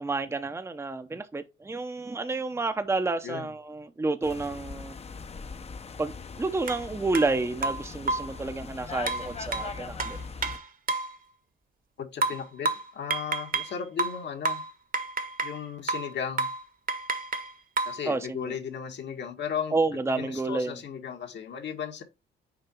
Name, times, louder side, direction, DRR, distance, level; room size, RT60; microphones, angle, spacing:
voice 1, 0.0-4.9 6.0-6.1 6.4-10.2 18.0-18.5 19.7-20.8, right 3 dB, 15° right, 0.8 m, -30 dB
sound 1, 4.2-10.6, left 4 dB, 30° left, 0.8 m, -40 dB
sound 2, 6.7-6.8 7.1-7.3 7.6-8.4 9.1-11.2 12.2-13.7 14.0-15.6 15.9-16.1 16.4-16.6 16.9-18.0, right 3 dB, 45° right, 1.3 m, -30 dB
voice 2, 12.0-14.6 15.4-16.5 17.8-19.7 20.1-22.0, left 7 dB, 60° left, 1.7 m, -35 dB
6.9 x 4.5 x 4.4 m
cardioid pair, 90°, 20 cm